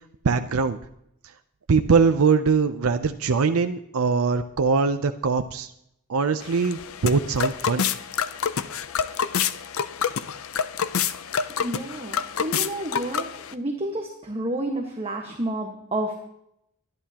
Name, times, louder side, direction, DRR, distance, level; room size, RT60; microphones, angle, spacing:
voice 1, 0.2-0.8 1.7-5.7 6.1-7.9, right 5 dB, 85° right, 8 dB, 0.6 m, -22 dB
sound 1, 6.4-13.5, left 7 dB, 70° left, 0.6 m, -28 dB
voice 2, 11.6-16.2, right 1 dB, 30° right, 1 dB, 1.4 m, -30 dB
23.5 x 11.0 x 2.9 m, 0.76 s
head